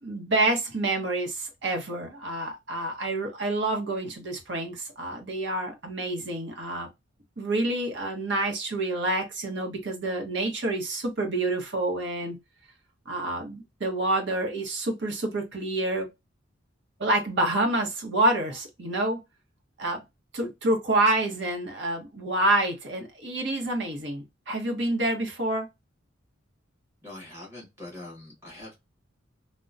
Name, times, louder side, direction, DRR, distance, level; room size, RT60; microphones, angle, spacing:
voice 1, 0.0-6.9 7.4-12.4 13.1-16.1 17.0-19.2 19.8-20.0 20.3-25.7, right 2 dB, 60° right, 0.9 m, -28 dB
voice 2, 27.0-28.7, left 1 dB, 10° right, 1.2 m, -43 dB
2.9 x 2.1 x 2.4 m
head